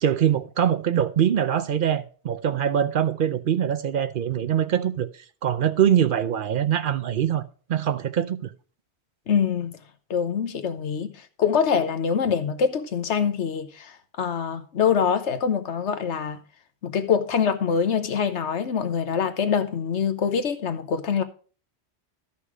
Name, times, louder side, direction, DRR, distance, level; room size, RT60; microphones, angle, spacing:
voice 1, 0.0-7.4 7.7-8.5, right 9 dB, 60° right, 0.7 m, -23 dB
voice 2, 9.3-9.8 10.1-11.1 11.4-13.9 14.2-16.4 16.8-21.2, left 7 dB, 85° left, 1.3 m, -24 dB
13.0 x 5.7 x 4.8 m
omnidirectional pair, 1.1 m